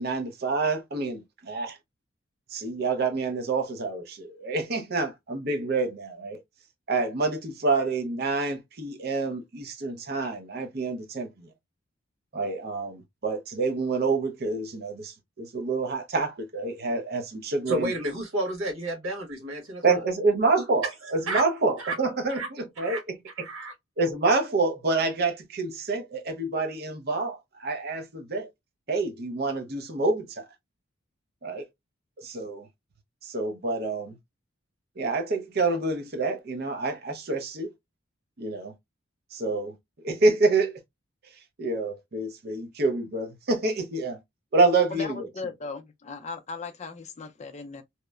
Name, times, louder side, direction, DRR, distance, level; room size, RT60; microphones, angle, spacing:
voice 1, 0.0-1.8 2.5-6.4 6.9-11.5 12.3-17.9 19.8-23.2 24.0-28.5 28.9-30.4 31.4-31.7 32.2-32.7 33.2-34.2 35.0-37.7 38.4-38.7 39.3-39.7 40.0-40.7 41.6-44.2 44.5-45.3, right 3 dB, 50° right, 0.6 m, -27 dB
voice 2, 17.7-20.0 20.5-20.6 21.3-21.4 21.8-21.9 22.3-22.5 22.8-23.0 23.4-23.7, right 2 dB, 85° right, 1.3 m, -31 dB
voice 3, 44.9-47.8, left 4 dB, 30° left, 0.4 m, -37 dB
2.9 x 2.0 x 2.2 m
head